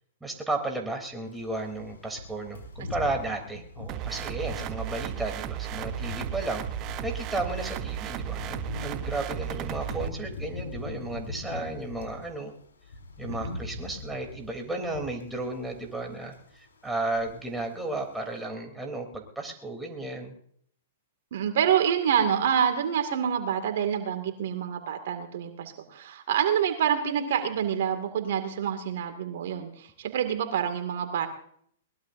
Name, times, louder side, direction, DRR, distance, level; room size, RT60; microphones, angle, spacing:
voice 1, 0.2-6.6 7.0-12.5 13.2-20.3, right 2 dB, 5° right, 2 dB, 3.2 m, -34 dB
sound 1, 1.3-12.3 12.6-16.0 16.3-16.5 16.9-17.7 17.9-18.1, left 2 dB, 80° left, 5.1 m, -40 dB
sound 2, 3.9-10.1, right 16 dB, 35° right, 0.8 m, -35 dB
voice 2, 13.3-13.6 21.3-31.3, right 8 dB, 65° right, 7 dB, 2.1 m, -27 dB
21.5 x 19.5 x 2.6 m, 0.63 s
hypercardioid pair, 115°, 0 cm